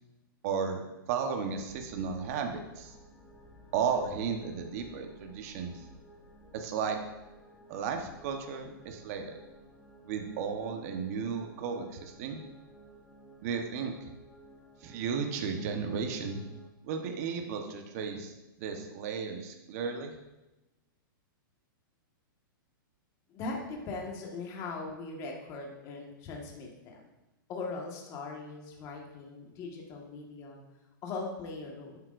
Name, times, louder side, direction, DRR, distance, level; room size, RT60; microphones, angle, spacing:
voice 1, 0.4-2.9 3.7-5.8 6.5-7.0 7.7-9.4 10.0-12.4 13.4-14.1 14.8-16.4 16.8-18.3 18.6-20.1, right 6 dB, 45° right, 4 dB, 1.1 m, -34 dB
sound 1, 1.5-16.7, right 1 dB, 10° left, 0.9 m, -55 dB
voice 2, 23.3-27.1 27.5-30.6 31.0-32.0, left 3 dB, 30° left, 0 dB, 1.6 m, -40 dB
11.0 x 7.9 x 2.6 m, 1.0 s
hypercardioid pair, 155°, 12 cm